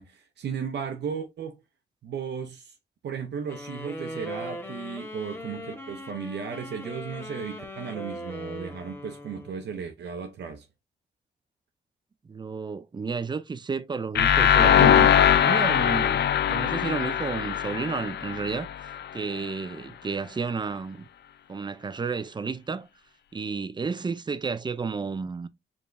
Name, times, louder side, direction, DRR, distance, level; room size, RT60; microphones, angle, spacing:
voice 1, 0.0-1.6 2.0-2.8 3.0-10.7 19.4-19.5, right 6 dB, 80° right, 0.7 m, -35 dB
sound 1, 3.5-9.9, equal, 15° left, 1.0 m, -39 dB
voice 2, 12.2-21.1 21.5-22.9 23.3-25.5, right 5 dB, 25° right, 0.4 m, -32 dB
sound 2, 14.1-19.0, left 9 dB, 75° left, 0.5 m, -21 dB
4.9 x 3.5 x 2.5 m
cardioid pair, 95°, 18 cm